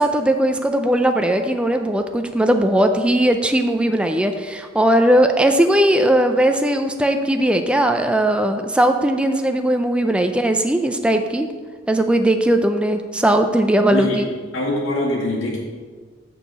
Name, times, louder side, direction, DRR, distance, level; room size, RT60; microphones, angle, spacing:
voice 1, 0.0-11.5 11.9-14.3, right 1 dB, 5° right, 5 dB, 0.4 m, -18 dB
voice 2, 13.9-14.2 14.5-15.6, left 1 dB, 80° left, -4 dB, 2.2 m, -23 dB
6.6 x 4.7 x 6.7 m, 1.5 s
head